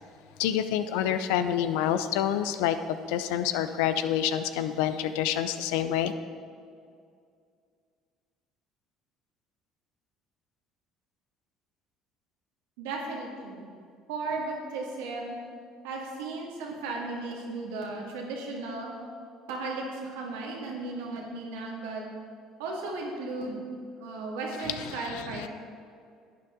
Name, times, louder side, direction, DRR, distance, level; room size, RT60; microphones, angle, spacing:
voice 1, 0.4-2.8 3.1-6.1 24.8-25.5, left 10 dB, 75° left, 11 dB, 0.5 m, -27 dB
voice 2, 12.8-13.7 14.1-15.4 15.8-18.9 19.5-22.0 22.6-23.6 24.0-25.5, right 3 dB, 80° right, -1 dB, 2.1 m, -35 dB
11.5 x 9.1 x 3.8 m, 2.3 s
hypercardioid pair, 65°, 0 cm